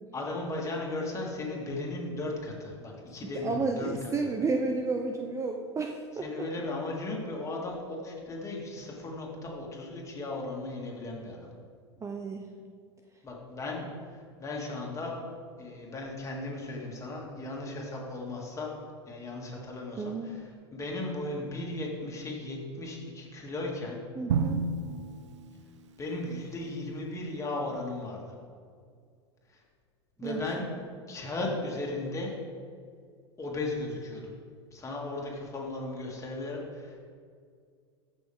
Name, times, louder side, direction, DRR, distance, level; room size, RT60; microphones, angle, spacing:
voice 1, 0.1-3.9 6.2-11.5 13.2-13.8 14.4-15.2 15.6-18.7 19.1-24.0 26.0-28.3 29.5-29.6 30.2-30.7 31.1-32.3 33.4-34.3 34.7-37.0, left 2 dB, 20° left, -2 dB, 2.6 m, -36 dB
voice 2, 3.4-6.5 12.0-12.5 20.0-20.4 24.1-24.7 30.2-30.4, right 3 dB, 20° right, 3 dB, 0.7 m, -32 dB
Drum, 24.3-26.3, right 5 dB, 80° right, 0.6 m, -32 dB
14.5 x 6.4 x 3.7 m, 2.1 s
hypercardioid pair, 95°, 15 cm